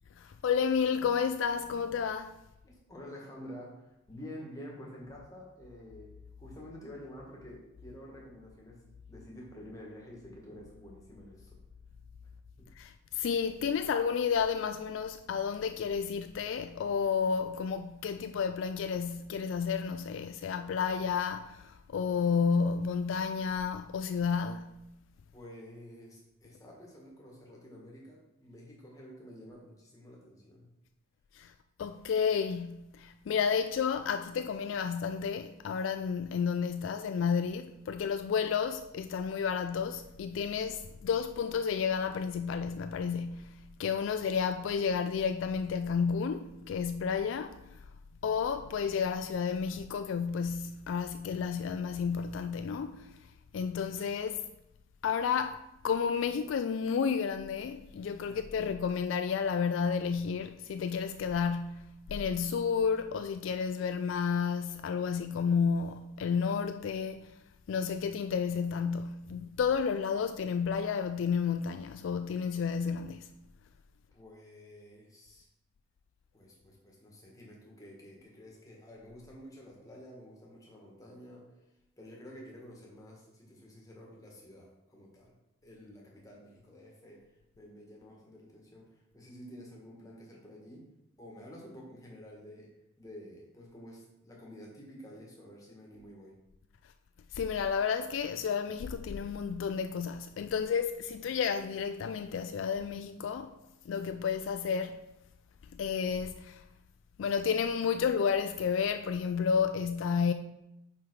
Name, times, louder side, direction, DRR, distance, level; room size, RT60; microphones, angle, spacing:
voice 1, 0.2-2.4 12.8-24.8 31.3-31.5 31.8-47.7 48.2-53.2 53.5-54.4 55.0-67.3 67.7-73.3 97.3-103.6 103.9-105.0 105.7-106.6 107.2-110.3, left 6 dB, 65° left, 0.3 m, -31 dB
voice 2, 2.6-8.8 9.1-11.6 12.6-12.7 25.3-30.7 58.2-58.7 74.1-75.5 76.3-81.5 82.0-85.3 85.6-87.3 87.6-90.9 91.2-92.7 93.0-96.4, equal, 15° left, 1.5 m, -50 dB
5.6 x 5.0 x 4.6 m
head